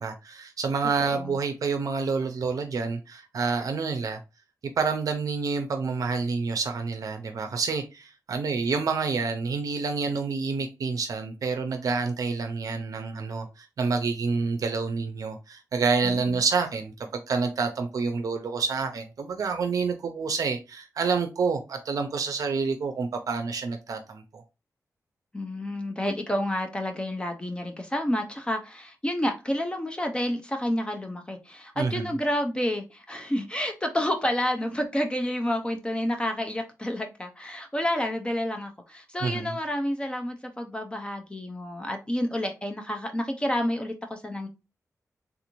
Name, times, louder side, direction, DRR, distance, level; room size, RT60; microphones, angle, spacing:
voice 1, 0.0-4.2 4.8-24.4 31.8-32.1 39.2-39.5, right 4 dB, 70° right, 0.5 m, -28 dB
voice 2, 1.0-1.4 16.0-16.4 25.3-44.5, left 1 dB, 15° left, 0.5 m, -29 dB
3.5 x 2.5 x 2.9 m
wide cardioid pair, 135°, 6 cm